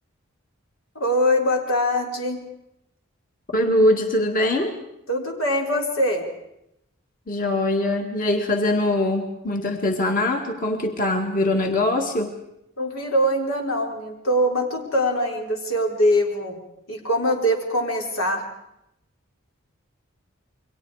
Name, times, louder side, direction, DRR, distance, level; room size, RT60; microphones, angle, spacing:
voice 1, 1.0-2.4 5.1-6.2 12.8-16.6 16.9-18.4, equal, 90° left, 1 dB, 4.1 m, -23 dB
voice 2, 3.5-4.8 7.3-12.3, left 1 dB, 45° left, 3 dB, 2.0 m, -22 dB
28.5 x 23.0 x 4.9 m, 0.83 s
head